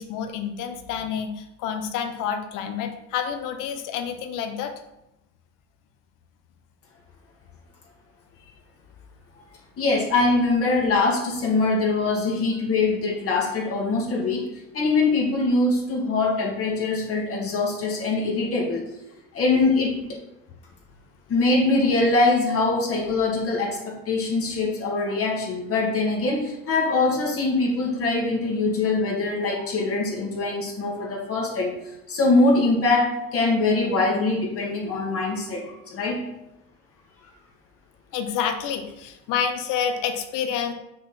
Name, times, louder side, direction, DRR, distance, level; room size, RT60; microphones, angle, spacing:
voice 1, 0.0-4.7 38.1-40.7, left 7 dB, 65° left, 6 dB, 1.1 m, -28 dB
voice 2, 9.8-14.5 14.7-18.9 19.3-20.0 21.3-31.8 32.1-36.2, left 3 dB, 40° left, -2 dB, 1.9 m, -23 dB
6.2 x 4.1 x 5.8 m, 0.88 s
cardioid pair, 120°, 34 cm